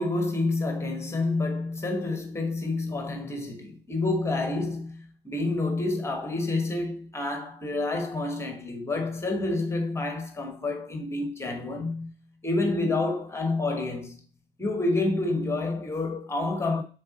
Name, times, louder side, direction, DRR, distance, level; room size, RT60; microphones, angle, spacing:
voice 1, 0.0-12.2 12.4-14.2 14.6-16.8, left 2 dB, 10° left, 1.3 m, -28 dB
7.4 x 3.9 x 4.0 m
figure-of-eight pair, 90°, 29 cm